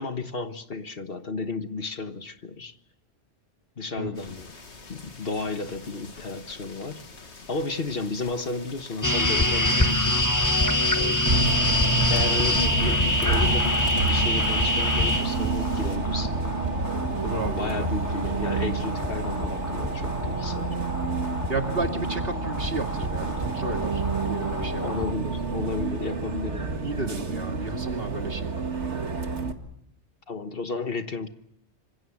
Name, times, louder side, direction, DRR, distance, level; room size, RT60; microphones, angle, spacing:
voice 1, 0.0-2.8 3.8-4.5 4.9-7.0 7.5-10.2 12.1-13.8 14.1-16.4 17.6-20.8 24.8-27.0 30.3-31.3, left 3 dB, 55° left, 1.5 m, -32 dB
sound 1, 4.1-16.0, left 3 dB, 70° left, 2.3 m, -46 dB
sound 2, 9.0-25.1, left 1 dB, 15° left, 1.1 m, -26 dB
voice 2, 10.9-11.3 17.2-17.9 21.5-25.1 26.8-28.6, right 2 dB, 55° right, 2.5 m, -33 dB
Bus, 11.3-29.5, right 4 dB, 75° right, 2.2 m, -29 dB
26.5 x 26.0 x 7.3 m
omnidirectional pair, 1.2 m